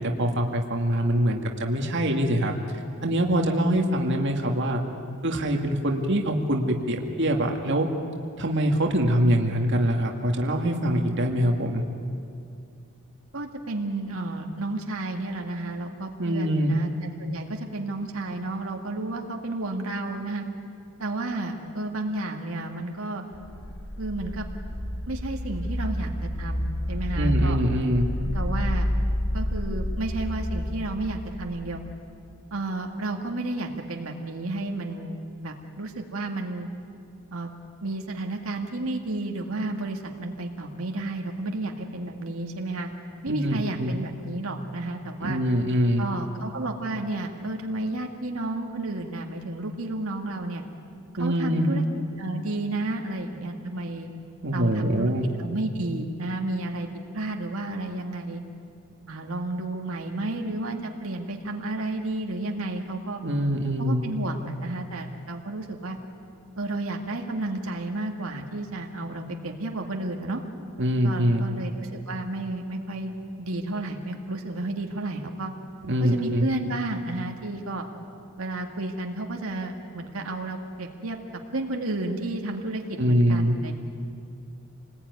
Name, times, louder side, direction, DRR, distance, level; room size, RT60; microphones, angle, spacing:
voice 1, 0.0-2.5 3.0-4.8 5.2-7.9 8.4-11.8 16.2-16.8 27.2-28.1 43.3-43.9 45.2-46.1 51.2-51.7 54.4-55.3 63.2-64.0 70.8-71.5 75.9-76.4 83.0-83.6, equal, 60° right, 2 dB, 2.1 m, -24 dB
voice 2, 13.3-16.9 17.2-20.5 21.0-23.2 24.0-24.5 25.1-26.1 26.4-27.6 28.2-28.9 29.3-31.8 32.5-36.7 37.3-37.5 37.8-42.9 43.2-45.4 46.0-50.6 51.2-51.8 52.2-54.1 54.5-55.1 55.4-56.9 57.1-58.4 59.1-63.2 63.8-66.0 66.6-70.4 71.0-75.5 76.0-77.9 78.4-81.2 81.5-83.8, right 2 dB, 75° right, 2 dB, 2.0 m, -32 dB
sound 1, 23.3-32.1, equal, 80° left, 3.1 m, -29 dB
27.5 x 20.5 x 9.6 m, 2.4 s
head